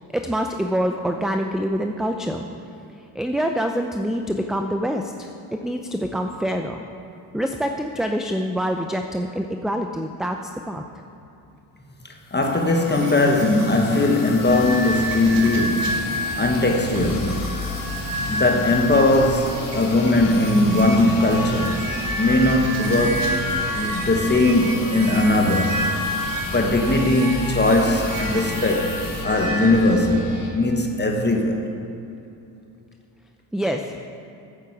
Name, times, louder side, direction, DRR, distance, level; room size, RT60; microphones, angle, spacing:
voice 1, 0.1-2.5 3.1-6.8 7.3-10.4 10.7-10.8 33.5-33.9, equal, ahead, 0.6 m, -25 dB
sound 1, 12.1-29.3, left 5 dB, 50° left, 1.6 m, -39 dB
voice 2, 12.3-16.0 16.4-17.6 18.3-21.9 22.2-23.4 23.7-25.8 26.5-31.7, left 2 dB, 25° left, 1.4 m, -20 dB
sound 2, 12.4-29.7, equal, 50° right, 3.2 m, -30 dB
sound 3, 14.4-30.5, left 3 dB, 70° left, 2.5 m, -33 dB
9.1 x 8.2 x 7.3 m
supercardioid pair, 70°, 43 cm